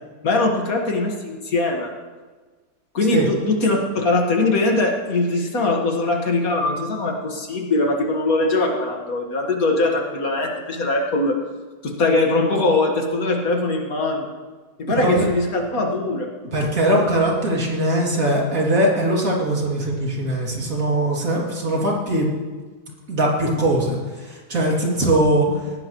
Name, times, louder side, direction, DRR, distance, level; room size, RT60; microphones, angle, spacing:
voice 1, 0.2-1.9 2.9-11.4 11.8-14.3 14.8-16.3, left 2 dB, 60° left, 1 dB, 2.1 m, -21 dB
voice 2, 14.9-15.3 16.5-22.3 23.1-25.5, right 1 dB, 55° right, -3 dB, 3.1 m, -21 dB
19.5 x 15.5 x 3.1 m, 1.4 s
omnidirectional pair, 1.7 m